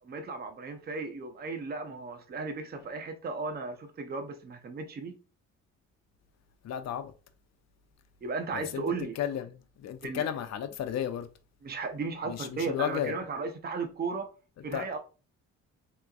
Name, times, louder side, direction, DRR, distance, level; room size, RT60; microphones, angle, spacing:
voice 1, 0.0-5.1 8.2-9.1 10.0-10.3 11.6-14.3 14.6-15.0, right 4 dB, 35° right, 0.6 m, -35 dB
voice 2, 6.6-7.1 8.5-8.8 9.2-11.3 12.2-13.2 14.7-14.9, left 9 dB, 60° left, 0.6 m, -33 dB
3.4 x 2.9 x 2.3 m
cardioid pair, 90°, 30 cm